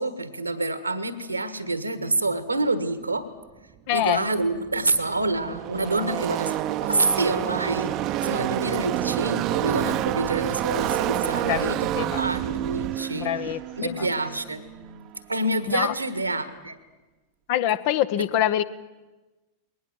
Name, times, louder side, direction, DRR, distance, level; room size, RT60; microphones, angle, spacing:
voice 1, 0.0-3.3 3.9-7.9 8.2-11.8 12.2-13.3 13.8-16.8, right 2 dB, 80° right, 13 dB, 1.4 m, -27 dB
voice 2, 3.9-4.3 11.5-12.2 13.1-14.1 15.7-15.9 17.5-18.6, left 12 dB, 50° left, 15 dB, 0.8 m, -25 dB
Car passing by / Race car auto racing, 4.2-4.3 4.4-15.0, right 14 dB, 40° right, 0.7 m, -28 dB
21.0 x 19.0 x 7.7 m, 1.1 s
figure-of-eight pair, 90°, 0 cm